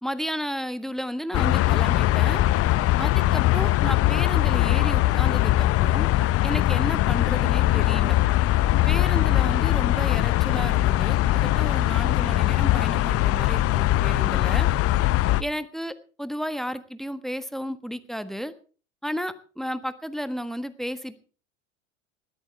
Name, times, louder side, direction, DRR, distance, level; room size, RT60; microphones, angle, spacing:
voice 1, 0.0-2.4 3.0-6.1 6.4-8.2 8.8-14.7 15.4-18.5 19.0-21.2, equal, ahead, 12 dB, 1.4 m, -33 dB
sound 1, 1.3-15.4, left 15 dB, 40° left, 0.8 m, -21 dB
20.5 x 13.5 x 3.4 m, 0.37 s
hypercardioid pair, 75°, 36 cm